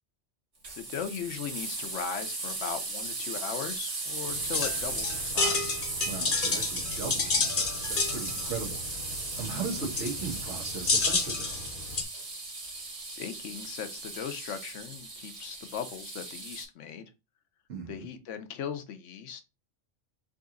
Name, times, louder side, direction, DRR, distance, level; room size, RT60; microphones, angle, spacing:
sound 1, 0.6-16.6, right 3 dB, 90° right, 2.0 m, -37 dB
voice 1, 0.8-5.8 9.5-9.9 13.2-17.0 17.9-19.4, left 7 dB, 80° left, 1.0 m, -38 dB
sound 2, 4.3-12.0, left 4 dB, 50° left, 0.9 m, -30 dB
voice 2, 6.1-9.1 9.4-11.6 17.7-18.1, right 5 dB, 70° right, 1.5 m, -38 dB
3.9 x 2.9 x 3.7 m
omnidirectional pair, 1.2 m